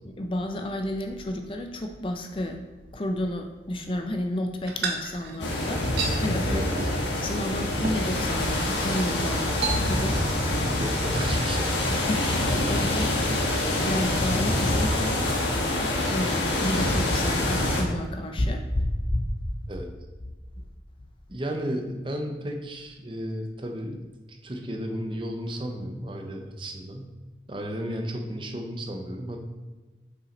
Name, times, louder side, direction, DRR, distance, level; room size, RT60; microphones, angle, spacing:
voice 1, 0.0-2.6 2.9-5.9 6.2-6.7 7.2-10.2 11.9-13.2 13.8-15.2 16.1-19.6 20.6-20.7, left 1 dB, 30° left, 5 dB, 0.4 m, -31 dB
sound 1, 4.7-6.2 6.7-7.0 7.3-7.4 7.8-8.4 8.8-9.1 9.6-10.3 10.5-10.9, right 4 dB, 70° right, 1.0 m, -32 dB
sound 2, 5.4-17.8, left 1 dB, 85° left, 1.3 m, -25 dB
voice 2, 6.4-6.9 10.8-11.8 19.7-19.9 21.3-24.0 24.3-27.1 27.5-29.4, equal, 30° right, 3 dB, 0.7 m, -34 dB
5.9 x 5.5 x 4.0 m, 1.3 s
head